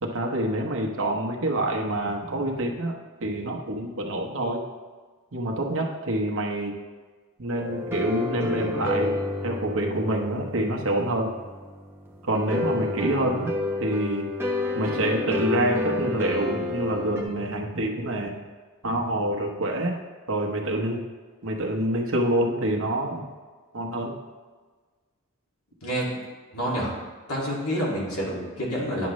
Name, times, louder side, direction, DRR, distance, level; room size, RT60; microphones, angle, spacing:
voice 1, 0.0-2.9 3.2-4.6 5.3-6.7 7.4-9.1 9.4-11.3 12.3-13.5 13.8-14.3 14.7-18.3 18.8-20.0 20.3-21.0 21.4-23.2 23.7-24.1, right 1 dB, 65° right, 1 dB, 1.1 m, -26 dB
sound 1, 7.6-17.2, left 2 dB, 10° right, 0.8 m, -30 dB
voice 2, 26.5-26.9 27.3-29.1, equal, 80° left, -4 dB, 2.3 m, -28 dB
9.6 x 6.2 x 3.1 m, 1.4 s
head